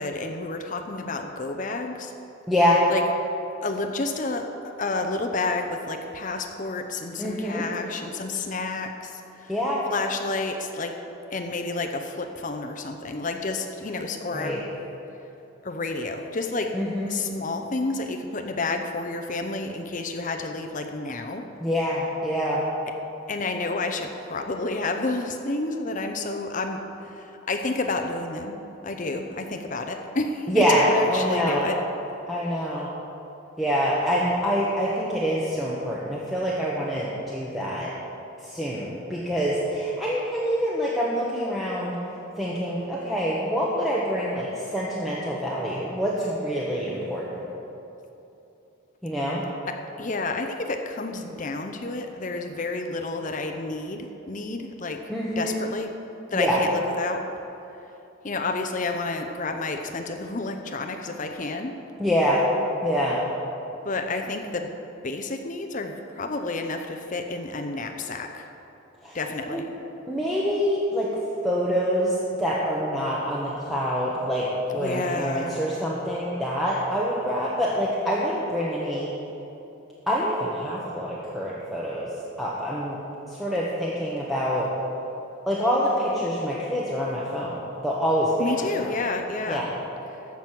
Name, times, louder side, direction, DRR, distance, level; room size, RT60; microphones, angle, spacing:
voice 1, 0.0-2.1 2.9-3.0 3.6-4.5 4.8-9.5 9.9-11.0 11.3-14.6 15.6-16.7 17.1-21.5 23.3-31.8 32.5-32.7 49.7-55.0 55.4-55.9 56.3-57.3 58.2-61.8 63.8-64.7 65.0-68.5 69.1-69.7 74.8-75.6 88.4-89.7, left 3 dB, 35° left, 5 dB, 0.6 m, -30 dB
voice 2, 2.5-2.9 7.2-7.7 9.5-9.8 14.3-14.6 16.7-17.1 21.6-22.6 30.5-31.7 32.3-32.9 33.6-37.9 38.4-42.0 42.4-47.4 49.0-49.4 55.1-55.6 56.3-56.6 62.0-62.4 62.8-63.2 69.0-69.2 69.5-69.6 70.1-71.1 71.4-79.1 80.1-82.1 82.4-83.0 83.3-84.7 85.5-88.9 89.5-89.7, equal, ahead, -6 dB, 1.1 m, -26 dB
14.5 x 6.2 x 7.5 m, 2.9 s
head